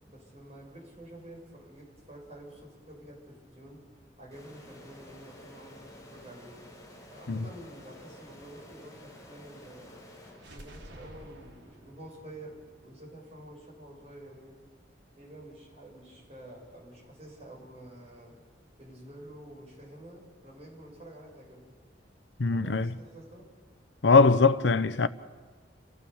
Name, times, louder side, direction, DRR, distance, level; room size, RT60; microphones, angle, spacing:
voice 1, 0.1-3.8 4.2-6.5 7.1-9.9 10.5-12.5 12.8-14.7 15.2-18.3 18.8-21.7 22.5-23.5, right 1 dB, 35° right, 7.4 m, -49 dB
sound 1, 4.3-11.0, left 1 dB, 20° left, 2.8 m, -51 dB
sound 2, 10.3-14.2, equal, 80° right, 3.3 m, -52 dB
voice 2, 22.4-22.9 24.0-25.1, left 4 dB, 75° left, 0.7 m, -21 dB
29.0 x 15.5 x 7.1 m
head